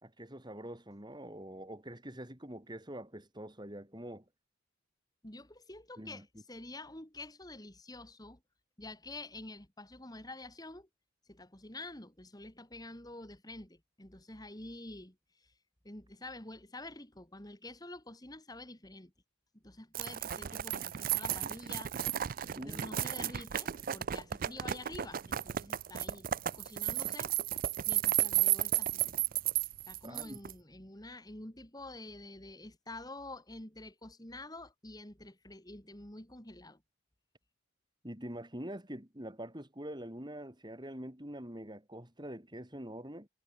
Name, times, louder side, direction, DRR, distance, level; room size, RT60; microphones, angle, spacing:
voice 1, 0.0-4.2 6.0-6.3 22.5-22.9 30.0-30.4 38.0-43.3, right 1 dB, 20° right, 3.7 m, -45 dB
voice 2, 5.2-8.4 8.8-10.9 11.3-15.5 15.8-19.1 19.6-22.0 22.6-26.3 26.5-27.3 27.9-29.2 29.9-36.8, left 2 dB, 20° left, 3.1 m, -48 dB
sound 1, 19.9-30.5, right 12 dB, 45° right, 0.4 m, -33 dB
head